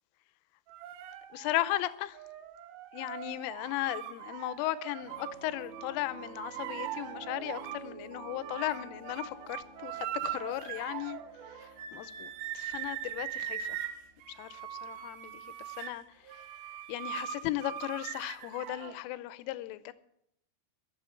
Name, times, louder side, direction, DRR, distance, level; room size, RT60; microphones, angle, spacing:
sound 1, 0.7-5.4 5.7-7.9 8.2-19.0, right 11 dB, 75° right, 2.6 m, -41 dB
voice 1, 1.3-2.2 2.9-13.8 14.3-16.4 16.9-19.9, left 15 dB, 85° left, 3.2 m, -36 dB
Piano, 5.0-15.4, right 4 dB, 60° right, 7.9 m, -50 dB
22.5 x 7.8 x 4.4 m
omnidirectional pair, 5.7 m